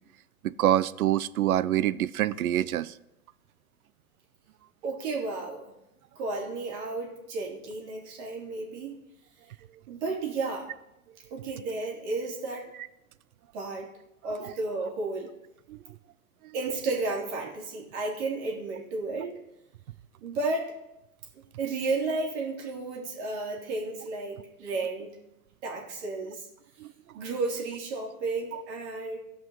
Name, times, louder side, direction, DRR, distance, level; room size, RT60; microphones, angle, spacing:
voice 1, 0.4-2.9 14.4-14.5 15.7-15.8 26.8-26.9 28.5-28.6, right 12 dB, 70° right, 18 dB, 0.6 m, -26 dB
voice 2, 4.8-5.7 6.1-9.0 9.9-10.7 11.3-12.7 13.5-13.9 14.2-15.3 16.5-19.4 20.2-20.7 21.6-25.1 25.6-26.5 27.1-29.2, right 3 dB, 45° right, -1 dB, 3.1 m, -32 dB
16.5 x 5.5 x 5.6 m, 0.89 s
hypercardioid pair, 130°, 45 cm